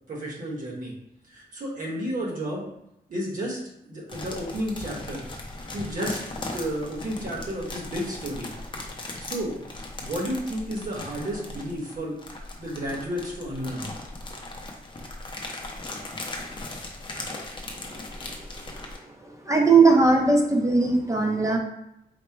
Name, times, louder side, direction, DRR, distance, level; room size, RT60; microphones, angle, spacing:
voice 1, 0.1-0.9 1.3-2.7 3.1-5.2 5.7-6.2 6.5-8.5 9.2-9.6 10.0-12.2 12.6-13.9, equal, 55° right, -3 dB, 1.2 m, -32 dB
sound 1, 4.1-19.0, left 2 dB, 30° left, 0.6 m, -38 dB
voice 2, 19.2-21.6, right 3 dB, 20° right, 1 dB, 0.5 m, -19 dB
4.3 x 2.1 x 4.5 m, 0.81 s
wide cardioid pair, 170°, 16 cm